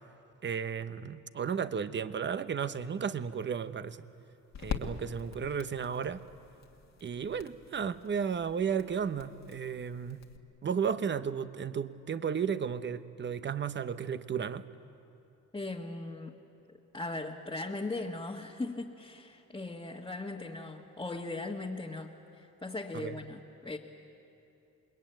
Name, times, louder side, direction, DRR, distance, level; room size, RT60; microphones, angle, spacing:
voice 1, 0.4-4.0 4.6-6.2 7.0-10.2 10.6-14.6 22.9-23.1, right 7 dB, 40° right, 12 dB, 1.0 m, -33 dB
sound 1, 2.4-10.4, left 6 dB, 60° left, 1.9 m, -45 dB
voice 2, 15.5-16.3 16.9-23.8, left 2 dB, 15° left, -3 dB, 1.6 m, -39 dB
27.5 x 21.5 x 9.2 m, 2.8 s
cardioid pair, 90°, 30 cm